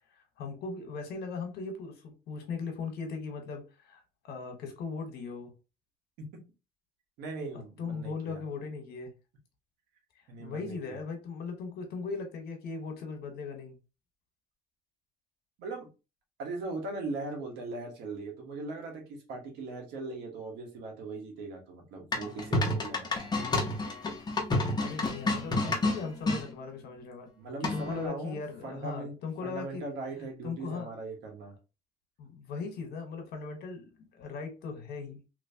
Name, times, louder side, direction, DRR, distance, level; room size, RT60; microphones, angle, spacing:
voice 1, 0.2-5.5 7.8-9.1 10.4-13.8 24.8-27.3 27.6-29.8 30.4-30.9 32.2-35.2, left 4 dB, 70° left, 1.2 m, -38 dB
voice 2, 7.2-8.4 10.3-11.0 15.6-15.9 16.4-23.1 27.4-29.1 29.4-31.5, right 3 dB, 90° right, 1.3 m, -39 dB
sound 1, 22.1-26.4 27.6-28.1, left 2 dB, 25° left, 0.8 m, -29 dB
3.1 x 2.9 x 2.7 m
cardioid pair, 110°, 17 cm